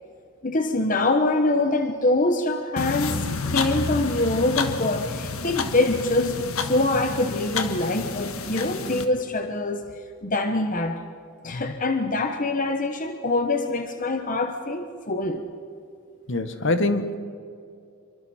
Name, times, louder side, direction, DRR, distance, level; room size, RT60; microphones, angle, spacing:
voice 1, 0.4-9.9 10.2-11.0 11.4-15.5, left 2 dB, 40° left, 6 dB, 1.1 m, -24 dB
sound 1, 2.8-9.0, left 4 dB, 80° left, 1.4 m, -30 dB
voice 2, 16.3-17.2, left 2 dB, 60° left, 9 dB, 1.4 m, -24 dB
27.0 x 24.0 x 4.4 m, 2.4 s
head